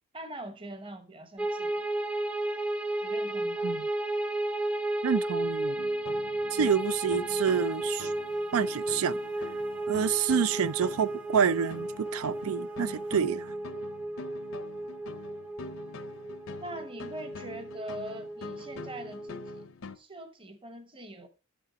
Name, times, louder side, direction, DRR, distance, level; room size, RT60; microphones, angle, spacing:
voice 1, 0.1-1.9 3.0-3.8 16.6-19.6 19.9-21.3, right 1 dB, 25° right, 1.0 m, -43 dB
sound 1, 1.4-19.6, right 1 dB, 5° right, 0.5 m, -34 dB
voice 2, 5.0-5.8 6.5-8.1 8.5-9.2 9.9-13.5, right 7 dB, 70° right, 0.4 m, -28 dB
sound 2, 5.8-20.0, left 4 dB, 65° left, 0.6 m, -45 dB
sound 3, 6.8-13.1, right 2 dB, 55° right, 4.4 m, -60 dB
8.4 x 6.8 x 5.1 m
head